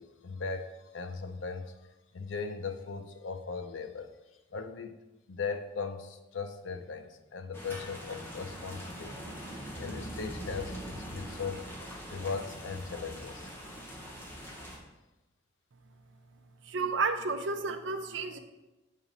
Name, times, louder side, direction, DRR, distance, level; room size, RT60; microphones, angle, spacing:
voice 1, 0.0-1.7 2.1-4.1 4.5-4.9 5.3-9.5 9.8-11.6 12.1-13.5, left 5 dB, 80° left, 8 dB, 0.6 m, -38 dB
sound 1, 7.5-14.8, equal, 10° left, 1.2 m, -42 dB
voice 2, 16.7-18.4, right 4 dB, 75° right, 8 dB, 0.6 m, -31 dB
7.4 x 4.9 x 4.0 m, 1.0 s
head